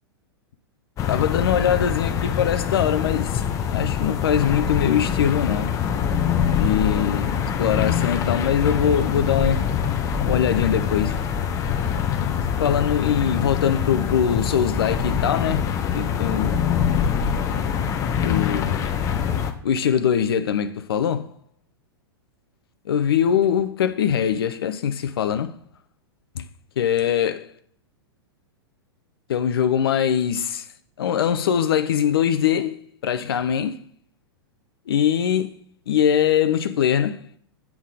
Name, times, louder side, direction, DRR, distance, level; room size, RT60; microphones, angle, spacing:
sound 1, 1.0-19.5, left 7 dB, 25° left, 0.6 m, -24 dB
voice 1, 1.1-3.4 3.7-5.8 6.5-9.7 10.2-11.2 12.6-16.7 18.2-18.8 19.6-21.3 22.9-25.6 26.4-26.5 26.8-27.5 29.3-30.7 31.0-33.8 34.9-35.5 35.9-37.2, left 8 dB, 65° left, 0.5 m, -22 dB
7.2 x 3.7 x 4.8 m
figure-of-eight pair, 100°, 13 cm